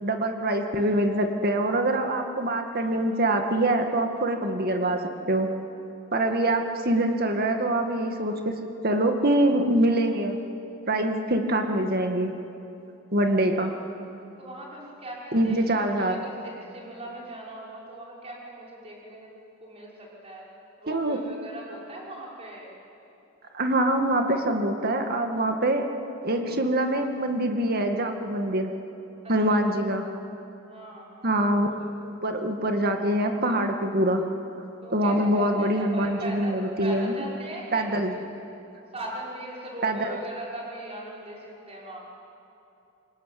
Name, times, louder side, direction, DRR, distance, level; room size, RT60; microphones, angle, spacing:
voice 1, 0.0-5.5 6.1-8.5 8.8-10.4 10.9-12.4 13.1-13.7 15.3-16.2 20.9-21.2 23.5-25.8 26.2-28.7 29.3-30.0 31.2-31.7 32.0-34.3 34.9-37.1 37.7-38.1 39.8-40.2, right 1 dB, 45° right, 4 dB, 2.1 m, -24 dB
voice 2, 13.3-13.7 14.4-15.6 16.0-19.3 19.6-20.5 20.8-22.7 29.2-29.6 30.7-31.4 31.8-31.9 34.8-37.9 38.9-42.0, right 1 dB, 30° right, -4 dB, 5.7 m, -40 dB
27.0 x 23.0 x 9.4 m, 2.8 s
head